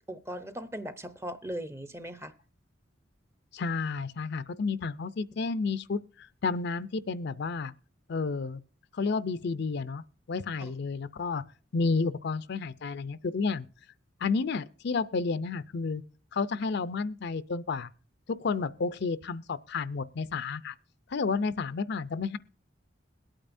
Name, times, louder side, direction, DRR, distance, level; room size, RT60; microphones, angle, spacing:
voice 1, 0.1-2.3 10.6-10.7, right 1 dB, 15° right, 0.7 m, -38 dB
voice 2, 3.5-7.7 8.1-8.6 8.9-10.0 10.3-11.4 11.7-13.7 14.2-16.0 16.3-17.9 18.3-20.7 21.1-22.4, left 4 dB, 60° left, 0.5 m, -31 dB
21.5 x 8.9 x 2.6 m
head